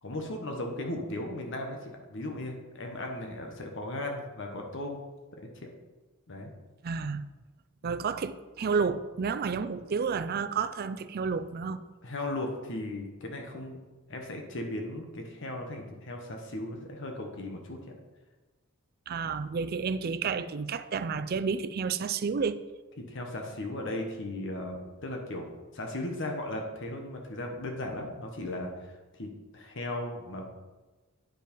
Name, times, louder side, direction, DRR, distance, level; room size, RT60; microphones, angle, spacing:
voice 1, 0.0-5.0 6.3-6.5 12.0-13.8 14.1-17.8 23.0-30.4, left 1 dB, 60° left, 1.1 m, -37 dB
voice 2, 6.8-7.2 7.8-11.8 19.1-22.6, right 5 dB, 45° right, 0.4 m, -30 dB
9.0 x 5.4 x 5.2 m
head